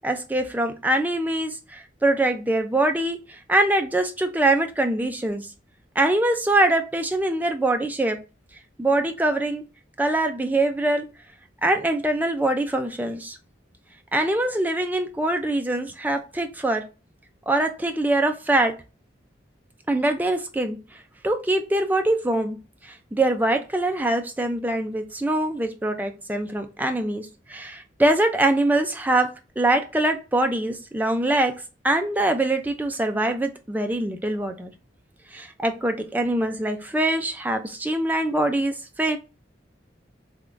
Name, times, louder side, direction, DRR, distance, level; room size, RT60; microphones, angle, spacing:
voice 1, 0.0-5.5 6.0-8.2 8.8-9.6 10.0-11.1 11.6-13.4 14.1-16.8 17.5-18.7 19.9-20.8 21.2-22.6 22.8-29.3 29.6-31.5 31.8-34.7 35.3-39.2, right 1 dB, 10° right, 5 dB, 0.4 m, -23 dB
3.5 x 2.9 x 2.5 m, 0.31 s
head